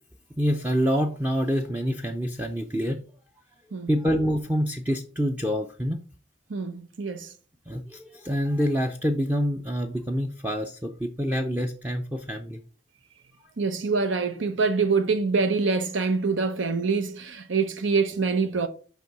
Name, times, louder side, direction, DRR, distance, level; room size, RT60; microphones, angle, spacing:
voice 1, 0.4-3.0 3.7-6.0 7.7-12.6, equal, 10° right, 0.5 m, -26 dB
voice 2, 6.5-7.3 13.6-18.7, right 4 dB, 80° right, 0.7 m, -25 dB
6.7 x 5.3 x 4.7 m
head